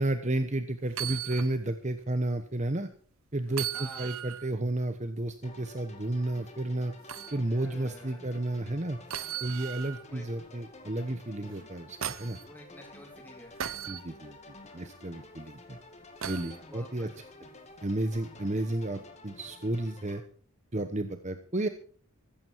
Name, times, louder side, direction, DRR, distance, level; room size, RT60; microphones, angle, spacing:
voice 1, 0.0-2.9 3.3-6.9 7.3-9.0 9.4-12.4 13.9-14.4 14.7-15.8 16.2-17.1 17.8-20.2 20.7-21.7, right 1 dB, 30° right, 9 dB, 1.0 m, -32 dB
sound 1, 0.9-1.5 2.0-2.1 3.5-4.5 7.1-7.4 9.1-10.0 11.5-12.4 13.6-14.0 16.2-16.6 18.4-18.5, right 10 dB, 65° right, 0.8 m, -37 dB
voice 2, 3.7-4.2 7.4-8.2 10.1-10.3 12.5-13.6 16.6-17.5, equal, 10° left, 2 dB, 3.6 m, -50 dB
sound 2, 5.4-20.2, left 2 dB, 30° left, 2.3 m, -51 dB
15.0 x 14.0 x 4.7 m, 0.43 s
head